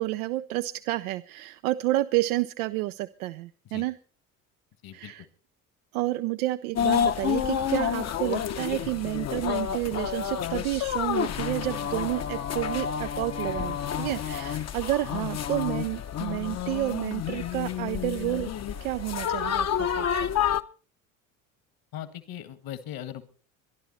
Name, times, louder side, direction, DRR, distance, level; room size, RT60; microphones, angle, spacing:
voice 1, 0.0-4.0 4.9-5.3 5.9-18.5 18.8-20.0, right 17 dB, 80° right, 10 dB, 0.7 m, -30 dB
sound 1, 6.8-20.6, left 9 dB, 35° left, 0.9 m, -29 dB
voice 2, 21.9-23.2, left 11 dB, 55° left, 12 dB, 1.7 m, -39 dB
24.0 x 11.0 x 4.2 m, 0.39 s
hypercardioid pair, 65°, 43 cm